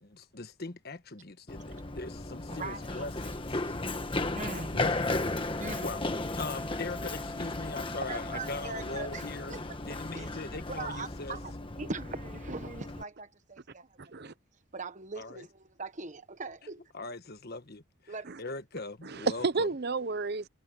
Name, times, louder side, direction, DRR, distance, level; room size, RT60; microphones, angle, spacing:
voice 1, 0.0-3.6 4.7-5.0 5.8-6.0 6.4-11.4 15.1-15.5 16.9-18.1 18.4-19.7, left 3 dB, 50° left, 1.4 m, -40 dB
Run, 1.5-13.0, left 2 dB, 25° left, 1.3 m, -35 dB
voice 2, 2.5-3.0 3.6-4.8 5.6-5.9 8.1-9.8 10.1-10.3 10.7-11.5 11.8-14.3 14.7-16.9 18.1-18.3, right 3 dB, 35° right, 1.2 m, -41 dB
Wind instrument woodwind instrument, 4.8-9.5, left 1 dB, 10° left, 5.6 m, -46 dB
voice 3, 14.0-14.3 18.2-18.4 19.0-20.5, right 3 dB, 50° right, 0.8 m, -31 dB
head